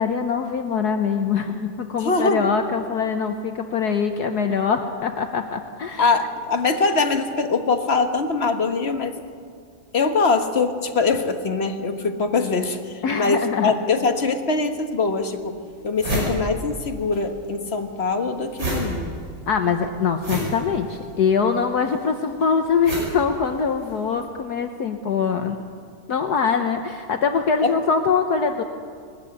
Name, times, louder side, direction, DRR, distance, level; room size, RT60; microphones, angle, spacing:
voice 1, 0.0-6.1 13.0-13.7 19.5-25.6 26.1-28.6, left 6 dB, 60° left, 6 dB, 1.3 m, -23 dB
voice 2, 2.0-2.5 6.0-9.2 9.9-15.6 15.8-19.1 27.6-27.7, left 4 dB, 40° left, 6 dB, 1.2 m, -23 dB
sound 1, 14.7-14.8 15.4-15.5 15.7-17.2 17.5-24.0, right 1 dB, 75° right, 6.2 m, -30 dB
20.5 x 13.0 x 9.6 m, 2.1 s
omnidirectional pair, 2.1 m